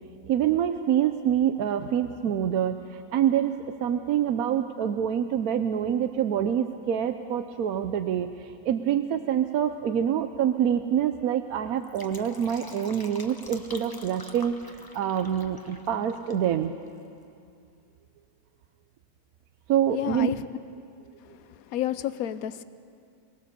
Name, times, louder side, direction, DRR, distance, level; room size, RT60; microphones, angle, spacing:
voice 1, 0.3-16.7 19.7-20.3, right 9 dB, 65° right, 7 dB, 1.0 m, -26 dB
Fill (with liquid), 11.7-16.5 16.8-16.9, left 2 dB, 15° left, 0.8 m, -46 dB
voice 2, 19.9-20.5 21.2-22.6, left 12 dB, 65° left, 14 dB, 1.0 m, -31 dB
23.5 x 18.5 x 6.8 m, 2.4 s
omnidirectional pair, 1.9 m